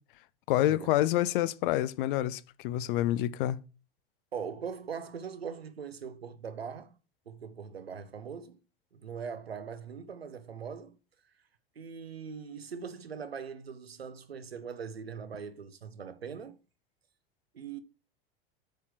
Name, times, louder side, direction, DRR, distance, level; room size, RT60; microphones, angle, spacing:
voice 1, 0.5-3.6, left 14 dB, 60° left, 0.7 m, -27 dB
voice 2, 4.3-7.0 7.3-8.6 8.9-11.0 11.8-16.6 17.5-17.8, right 6 dB, 90° right, 0.9 m, -41 dB
8.3 x 4.4 x 4.6 m
figure-of-eight pair, 85°, 30 cm